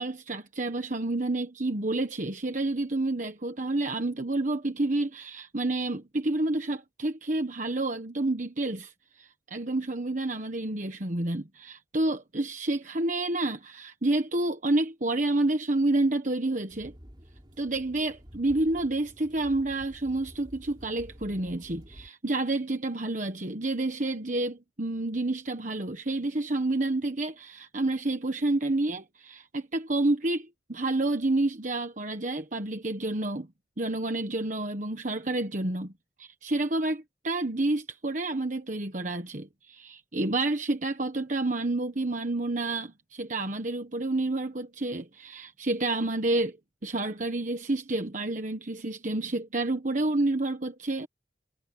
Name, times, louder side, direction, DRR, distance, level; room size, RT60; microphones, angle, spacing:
voice 1, 0.0-16.9 17.6-33.5 33.8-35.9 36.2-46.6 46.8-51.1, right 2 dB, 45° right, 1.3 m, -29 dB
sound 1, 16.7-22.1, equal, 25° right, 3.2 m, -50 dB
head